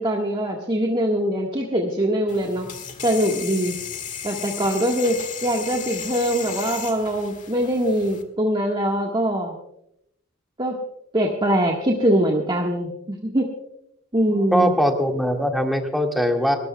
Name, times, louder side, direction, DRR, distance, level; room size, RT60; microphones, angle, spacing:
voice 1, 0.0-2.7 3.0-3.7 4.2-5.2 5.4-9.5 10.6-10.8 11.1-13.5 14.1-14.8, equal, 25° right, 0 dB, 1.5 m, -22 dB
sound 1, 2.3-8.2, left 7 dB, 40° left, 1.6 m, -35 dB
voice 2, 14.5-16.6, equal, ahead, 2 dB, 1.9 m, -21 dB
30.0 x 13.5 x 2.3 m, 0.79 s
head